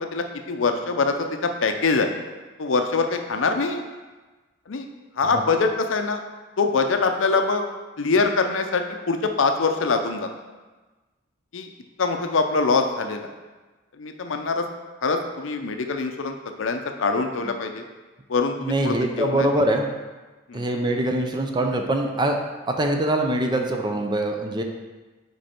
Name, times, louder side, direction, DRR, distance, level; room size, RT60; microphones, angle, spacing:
voice 1, 0.0-2.1 2.6-3.8 4.7-4.9 5.2-6.2 6.6-7.6 8.0-10.3 11.5-11.7 12.0-13.3 14.0-14.7 15.0-17.8 18.3-19.5 20.5-20.7, left 4 dB, 70° left, 5 dB, 0.6 m, -24 dB
voice 2, 18.6-19.9 20.5-22.4 22.7-24.6, right 1 dB, 20° right, 3 dB, 0.5 m, -23 dB
5.1 x 4.7 x 4.4 m, 1.2 s
head